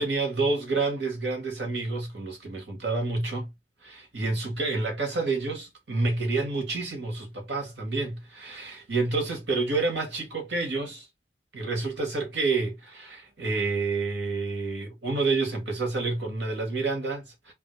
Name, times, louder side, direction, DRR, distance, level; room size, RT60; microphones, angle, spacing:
voice 1, 0.0-3.5 3.8-11.1 11.5-17.5, right 3 dB, 80° right, 2.2 m, -29 dB
3.7 x 3.5 x 3.3 m
head